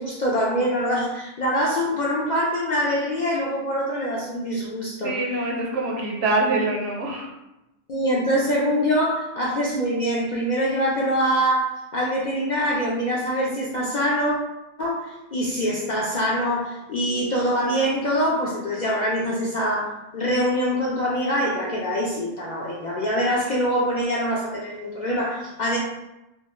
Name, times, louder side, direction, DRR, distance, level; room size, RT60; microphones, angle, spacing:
voice 1, 0.0-5.5 7.9-14.4 14.8-25.8, equal, 60° left, -5 dB, 0.4 m, -24 dB
voice 2, 5.0-7.3, right 2 dB, 85° right, -1 dB, 1.0 m, -24 dB
2.7 x 2.3 x 2.9 m, 0.95 s
omnidirectional pair, 1.2 m